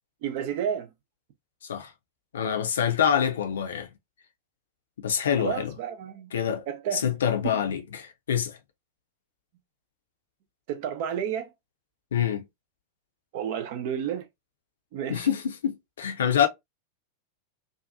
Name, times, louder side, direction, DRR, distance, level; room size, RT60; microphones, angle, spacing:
voice 1, 0.2-0.9 5.4-6.3 6.7-7.1 7.4-7.5 10.7-11.5 13.3-14.3 14.9-15.3, right 8 dB, 50° right, 0.6 m, -31 dB
voice 2, 2.3-3.9 5.0-5.7 6.3-6.6 6.9-8.6 12.1-12.4 15.1-16.5, left 8 dB, 65° left, 0.6 m, -26 dB
2.7 x 2.4 x 2.3 m
figure-of-eight pair, 90°, 0 cm